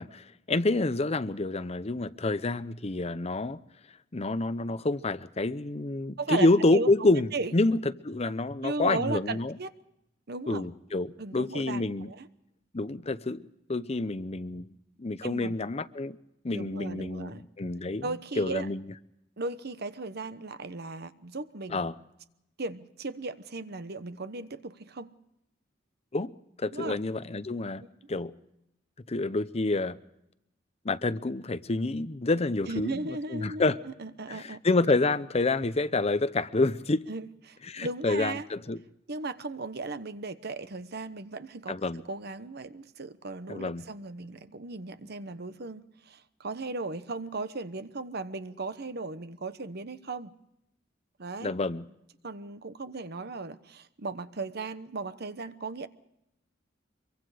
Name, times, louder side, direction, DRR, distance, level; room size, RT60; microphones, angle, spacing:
voice 1, 0.0-3.6 4.1-9.5 10.5-12.1 12.7-16.2 16.4-18.0 18.4-18.8 21.7-21.9 26.1-26.3 26.6-28.3 29.1-30.0 30.8-33.8 34.3-37.0 37.7-38.8 41.7-42.0 43.5-43.8 51.4-51.8, left 2 dB, 35° left, 0.7 m, -28 dB
voice 2, 6.2-6.9 7.3-7.5 8.6-9.7 10.3-10.7 11.2-12.3 15.2-15.6 16.5-17.4 18.0-18.7 19.4-21.9 22.6-25.1 26.7-27.0 32.7-34.6 37.1-38.5 39.1-50.3 51.2-51.6 52.2-55.9, right 3 dB, 55° right, 1.0 m, -36 dB
25.0 x 23.5 x 5.0 m
head